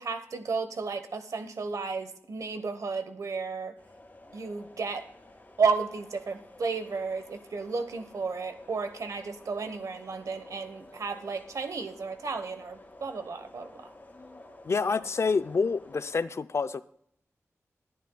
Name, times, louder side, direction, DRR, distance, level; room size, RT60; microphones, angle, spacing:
voice 1, 0.0-3.8 4.3-5.1 5.6-13.9, right 4 dB, 85° right, 8 dB, 1.0 m, -33 dB
sound 1, 3.8-16.3, left 2 dB, 35° left, 2.1 m, -52 dB
voice 2, 14.6-16.8, left 4 dB, 55° left, 14 dB, 0.4 m, -27 dB
20.5 x 11.0 x 2.3 m, 0.69 s
wide cardioid pair, 90°, 5 cm